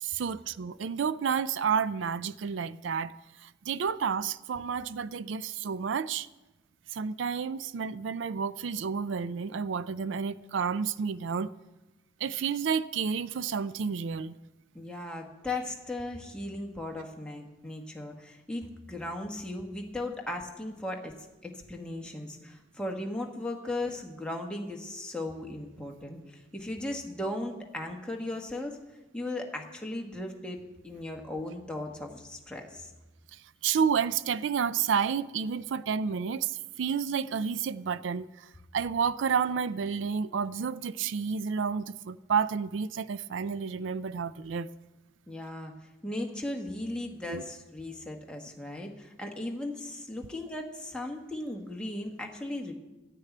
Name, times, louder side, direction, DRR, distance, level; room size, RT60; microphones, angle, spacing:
voice 1, 0.0-3.1 3.4-6.3 6.9-11.5 12.2-14.3 33.3-38.5 38.7-44.7 47.3-47.4, right 6 dB, 80° right, 0.4 m, -30 dB
voice 2, 14.7-21.1 21.4-28.8 29.1-32.9 45.3-45.7 46.0-52.7, left 1 dB, 5° left, 1.4 m, -37 dB
13.5 x 6.6 x 9.3 m
head